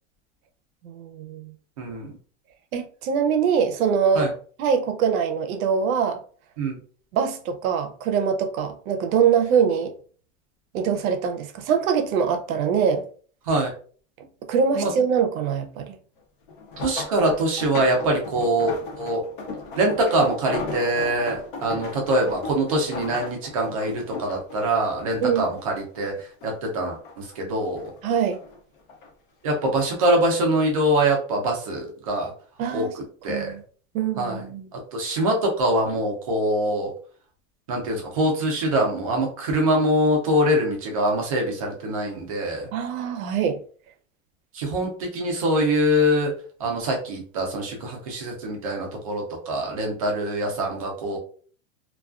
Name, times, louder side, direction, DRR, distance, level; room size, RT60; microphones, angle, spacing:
voice 1, 0.8-1.5 2.7-4.3 4.6-6.2 7.1-9.9 10.7-13.0 14.2-16.0 25.2-25.5 28.0-28.4 32.6-32.9 33.3-33.6 33.9-34.7 42.7-43.6, right 7 dB, 80° right, 0.6 m, -23 dB
voice 2, 1.8-2.1 4.1-4.3 6.6-6.8 13.5-13.7 14.7-14.9 16.8-19.2 19.8-27.8 29.4-32.3 32.7-33.5 34.2-36.9 37.7-42.7 44.5-46.3 46.6-51.2, right 1 dB, 30° right, 0.4 m, -24 dB
sound 1, 16.5-26.1 26.4-27.4 27.8-29.1 29.8-30.1 30.6-30.7, left 3 dB, 40° left, 0.4 m, -36 dB
2.3 x 2.3 x 2.3 m
supercardioid pair, 170°, 41 cm